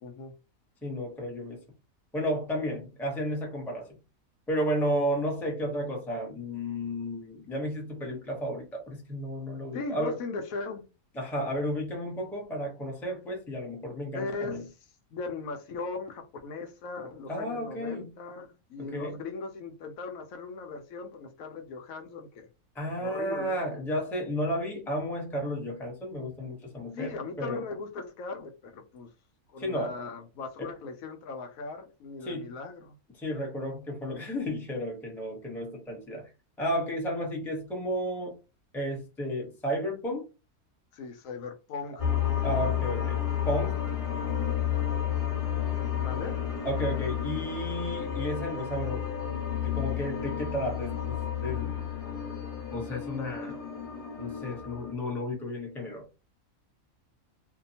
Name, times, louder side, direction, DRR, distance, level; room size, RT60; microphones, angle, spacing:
voice 1, 0.0-0.3 9.7-10.8 14.1-14.7 15.1-22.5 23.0-23.6 26.9-29.1 29.5-32.9 40.9-42.1 45.9-46.4, left 4 dB, 75° left, 1.0 m, -38 dB
voice 2, 0.8-1.6 2.1-4.0 4.5-10.2 11.1-14.6 17.3-18.1 18.9-19.2 22.7-27.6 29.6-30.0 30.6-30.7 32.2-32.6 33.2-36.3 36.6-38.4 38.7-40.2 42.4-43.2 43.5-43.8 46.6-49.1 49.6-51.8 52.7-53.6 54.2-56.0, equal, ahead, 0.5 m, -33 dB
sound 1, 42.0-54.9, left 9 dB, 25° left, 1.1 m, -31 dB
2.7 x 2.2 x 2.7 m
omnidirectional pair, 1.5 m